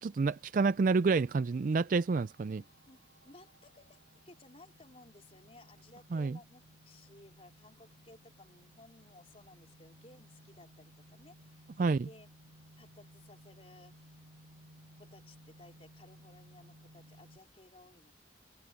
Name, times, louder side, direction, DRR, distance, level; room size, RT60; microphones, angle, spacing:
voice 1, 0.0-2.6 6.1-6.4 11.8-12.1, right 4 dB, 45° right, 0.4 m, -29 dB
sound 1, 1.4-17.4, equal, 90° right, 5.1 m, -60 dB
voice 2, 2.6-3.0 3.2-4.0 4.2-12.3 12.8-14.1 15.0-18.1, left 2 dB, 35° left, 4.2 m, -58 dB
head